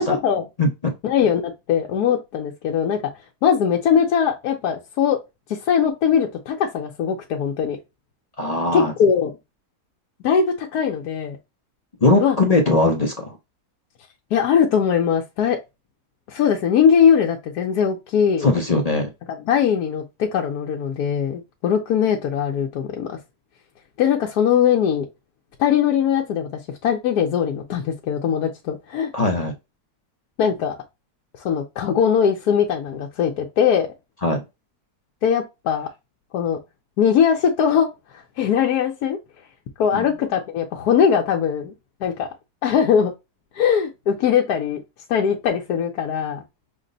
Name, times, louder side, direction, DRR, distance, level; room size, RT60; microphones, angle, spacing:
voice 1, 0.0-0.4 1.0-3.0 3.4-5.2 5.5-7.8 8.7-9.3 10.2-11.4 12.2-12.4 14.3-15.6 16.3-18.5 19.3-23.2 24.0-25.1 25.6-26.5 26.8-29.1 30.4-30.8 31.4-33.9 35.2-35.9 36.3-36.6 37.0-39.2 39.8-41.7 42.0-42.3 42.6-43.1 43.5-44.8 45.1-46.4, left 7 dB, 75° left, 1.2 m, -20 dB
voice 2, 0.6-0.9 8.4-8.9 12.0-13.4 18.4-19.1 29.1-29.5 34.2-34.4 39.9-40.1, left 2 dB, 45° left, 0.5 m, -20 dB
5.9 x 2.1 x 3.8 m
omnidirectional pair, 1.7 m